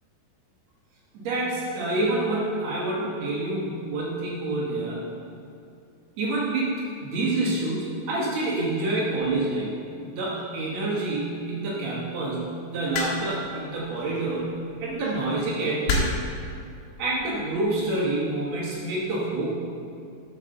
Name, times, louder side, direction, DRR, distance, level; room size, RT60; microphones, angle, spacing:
voice 1, 1.1-5.1 6.2-9.7 10.0-12.5 12.7-14.5 14.8-16.1 17.0-19.4, right 2 dB, 80° right, -5 dB, 1.5 m, -27 dB
sound 1, 12.9-13.5 14.7-14.9 15.9-16.4 17.3-17.6, left 3 dB, 65° left, 3.0 m, -27 dB
8.2 x 7.5 x 6.5 m, 2.4 s
omnidirectional pair, 5.3 m